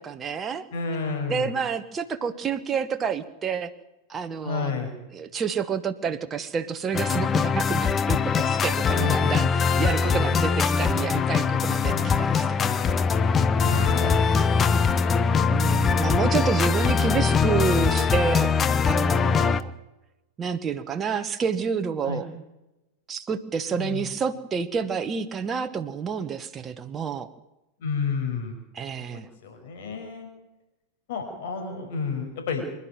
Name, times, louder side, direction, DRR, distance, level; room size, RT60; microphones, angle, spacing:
voice 1, 0.0-0.7 1.3-3.7 4.1-4.7 5.1-12.8 13.8-14.5 15.5-18.5 18.8-19.7 20.4-22.3 23.1-27.3 28.7-29.3, right 6 dB, 20° right, 9 dB, 1.3 m, -29 dB
voice 2, 0.7-1.5 4.4-4.9 8.9-9.3 11.9-12.4 13.6-14.2 22.0-22.2 23.7-24.1 27.8-28.6 29.0-30.3 31.1-32.7, left 5 dB, 55° left, 4 dB, 5.9 m, -30 dB
sound 1, 6.9-19.6, left 5 dB, 25° left, 0.9 m, -22 dB
25.0 x 11.5 x 9.2 m, 0.97 s
figure-of-eight pair, 90°, 0 cm